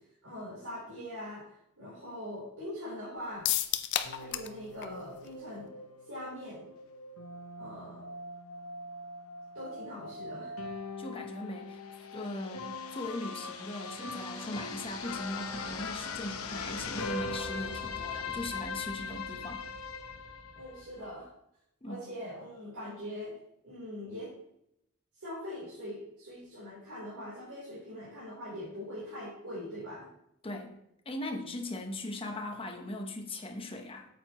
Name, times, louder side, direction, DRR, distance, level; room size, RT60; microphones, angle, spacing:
voice 1, 0.2-1.4 1.8-3.5 4.1-5.7 6.1-6.7 7.6-8.1 9.5-10.5 20.5-21.3 21.9-23.3 23.6-24.3 25.1-30.1, left 1 dB, 80° right, -9 dB, 3.6 m, -42 dB
sound 1, 3.4-4.6 4.8-4.9 5.3-5.4, left 11 dB, 55° left, 0.5 m, -30 dB
sound 2, 4.0-21.1, left 4 dB, 75° left, 0.9 m, -41 dB
voice 2, 11.0-11.8 12.1-19.6 21.8-22.1 30.4-30.8 31.0-34.1, left 1 dB, 25° left, 3 dB, 1.0 m, -39 dB
8.7 x 7.7 x 3.0 m, 0.78 s
head